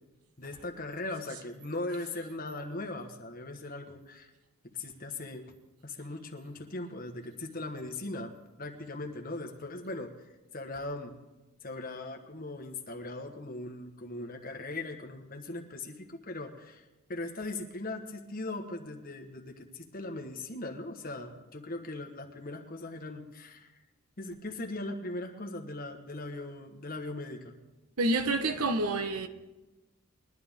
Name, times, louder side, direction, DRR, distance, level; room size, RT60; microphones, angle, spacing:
voice 1, 0.4-4.3 4.7-5.5 5.8-10.1 10.5-11.1 11.6-16.8 17.1-23.7 24.2-27.6, left 2 dB, 40° left, 1.4 m, -39 dB
voice 2, 28.0-29.3, right 2 dB, 90° right, 1.1 m, -28 dB
22.0 x 11.5 x 3.7 m
head